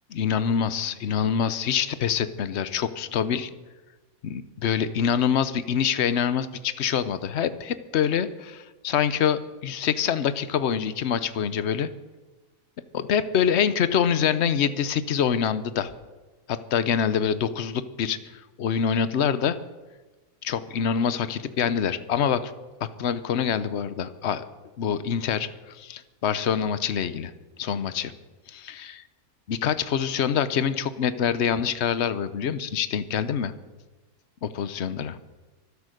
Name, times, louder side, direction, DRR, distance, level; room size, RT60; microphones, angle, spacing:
voice 1, 0.1-3.5 4.2-11.9 12.9-15.9 16.5-18.2 18.6-19.6 20.4-22.5 23.0-24.4 24.8-27.3 27.6-28.1 28.5-29.0 29.5-33.5 34.4-35.2, left 8 dB, 55° left, 13 dB, 1.0 m, -25 dB
24.5 x 8.4 x 6.6 m, 1.2 s
omnidirectional pair, 1.5 m